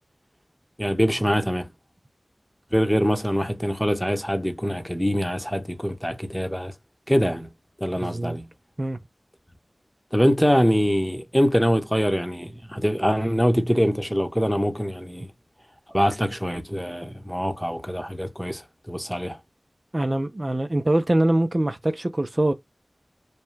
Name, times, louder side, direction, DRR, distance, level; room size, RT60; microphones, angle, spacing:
voice 1, 0.8-1.7 2.7-6.7 7.1-7.5 7.8-8.5 10.1-15.3 15.9-19.4, equal, ahead, 1.0 m, -24 dB
voice 2, 8.0-8.4 8.8-9.0 19.9-22.5, right 1 dB, 45° right, 0.6 m, -23 dB
5.3 x 2.3 x 3.3 m
wide cardioid pair, 40°, 0 cm